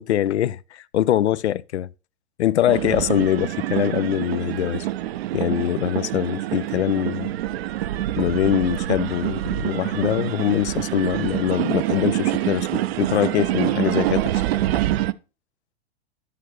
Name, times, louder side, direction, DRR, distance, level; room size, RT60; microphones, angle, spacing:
voice 1, 0.0-1.9 2.4-4.9 5.3-7.3 8.2-14.4, left 11 dB, 85° left, 0.6 m, -23 dB
sound 1, 2.7-15.1, right 14 dB, 65° right, 0.6 m, -26 dB
11.0 x 6.7 x 3.1 m
hypercardioid pair, 105°, 33 cm